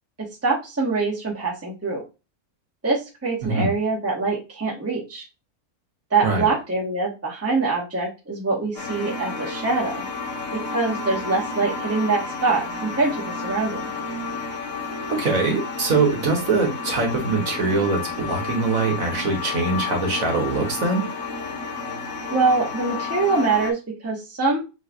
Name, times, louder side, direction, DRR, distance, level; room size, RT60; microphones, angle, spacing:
voice 1, 0.2-2.0 2.8-5.3 6.1-10.0 10.5-13.9 22.3-24.6, right 3 dB, 10° right, -2 dB, 1.1 m, -24 dB
sound 1, 8.8-23.7, left 4 dB, 55° left, 1.2 m, -31 dB
voice 2, 15.1-21.0, right 3 dB, 65° right, 2 dB, 1.6 m, -23 dB
5.6 x 3.1 x 2.5 m, 0.27 s
omnidirectional pair, 1.6 m